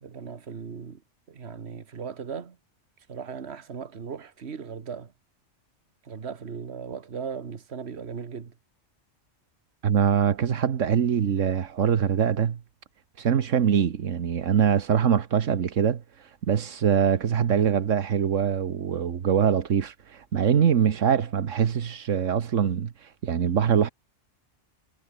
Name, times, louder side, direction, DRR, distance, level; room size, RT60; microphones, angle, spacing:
voice 1, 0.0-1.0 1.3-2.6 3.1-5.1 6.0-8.5, right 6 dB, 60° right, 1.7 m, -37 dB
voice 2, 9.8-12.6 13.2-16.0 16.5-23.9, right 8 dB, 85° right, 1.5 m, -23 dB
omnidirectional pair, 1.3 m